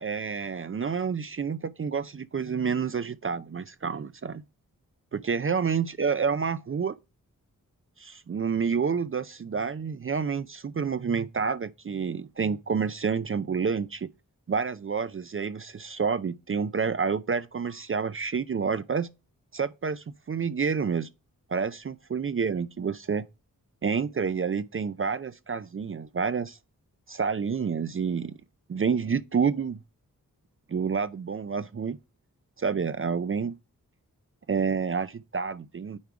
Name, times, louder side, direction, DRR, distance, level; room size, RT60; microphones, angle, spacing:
voice 1, 0.0-4.4 5.1-7.0 8.0-14.1 14.5-19.1 19.5-21.1 21.5-23.2 23.8-26.6 27.1-28.3 28.7-29.8 30.7-32.0 32.6-33.5 34.5-36.0, right 6 dB, 40° right, 0.5 m, -29 dB
9.5 x 3.5 x 4.7 m
cardioid pair, 40°, 35 cm